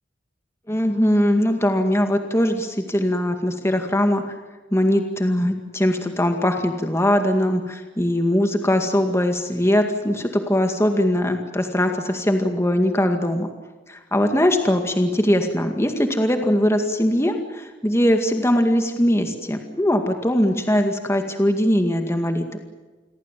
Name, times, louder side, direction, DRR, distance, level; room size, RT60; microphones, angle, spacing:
voice 1, 0.7-4.3 4.7-13.5 13.9-22.6, left 1 dB, 15° left, 5 dB, 2.1 m, -21 dB
29.0 x 22.5 x 7.6 m, 1.3 s
head